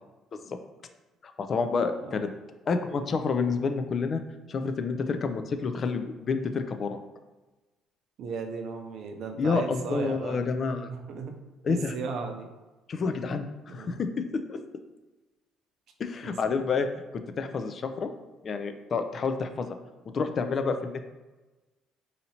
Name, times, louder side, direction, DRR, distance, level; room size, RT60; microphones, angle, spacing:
voice 1, 1.2-2.3 2.7-4.2 4.5-7.0 9.4-10.9 11.6-11.9 12.9-14.1 14.5-14.6 16.0-16.9 17.4-18.1 18.4-19.7 20.1-21.1, left 4 dB, 45° left, 7 dB, 0.3 m, -29 dB
voice 2, 8.2-10.4 11.0-11.3 11.7-12.5 13.7-14.0 16.2-16.7, right 4 dB, 65° right, 4 dB, 0.5 m, -36 dB
4.0 x 2.7 x 2.8 m, 1.2 s
supercardioid pair, 85°, 0 cm